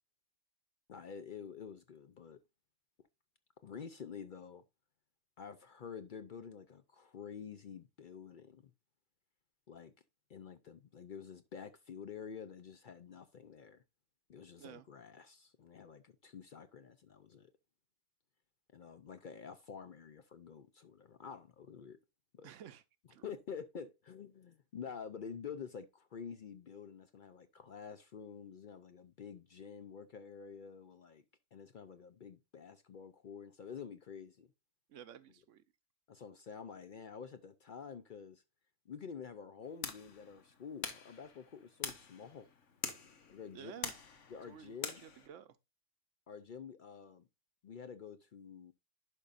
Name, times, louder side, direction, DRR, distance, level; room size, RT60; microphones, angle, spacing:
voice 1, 0.9-2.4 3.6-4.6 5.4-8.7 9.7-9.9 10.3-13.8 14.3-17.5 18.7-22.0 22.3-22.5 23.2-31.2 31.5-34.5 36.1-38.4 38.9-42.5 43.3-43.7 44.3-45.0 46.3-47.3 47.6-48.7, left 6 dB, 55° left, 0.6 m, -49 dB
voice 2, 22.4-22.8 23.1-23.3 34.9-35.6 43.5-43.9 44.5-45.6, right 9 dB, 80° right, 1.0 m, -52 dB
sound 1, 39.6-45.3, left 6 dB, 75° left, 1.4 m, -46 dB
11.0 x 5.2 x 2.4 m
omnidirectional pair, 1.3 m